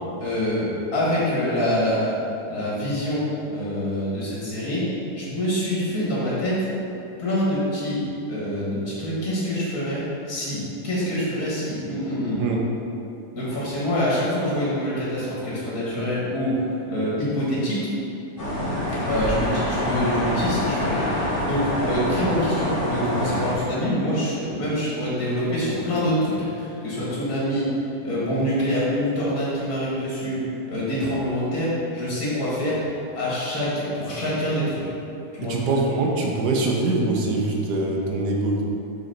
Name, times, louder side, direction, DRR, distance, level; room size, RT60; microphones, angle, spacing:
voice 1, 0.2-2.2 2.5-4.8 5.2-6.7 7.2-8.0 8.3-12.4 13.3-17.8 19.1-30.4 30.7-32.8 33.1-34.8 35.3-35.6, equal, 60° left, -8 dB, 2.2 m, -25 dB
sound 1, 18.4-23.5, equal, 35° left, 1.5 m, -25 dB
voice 2, 35.4-38.6, right 2 dB, 90° right, -1 dB, 1.5 m, -23 dB
6.3 x 5.9 x 4.4 m, 2.8 s
omnidirectional pair, 1.7 m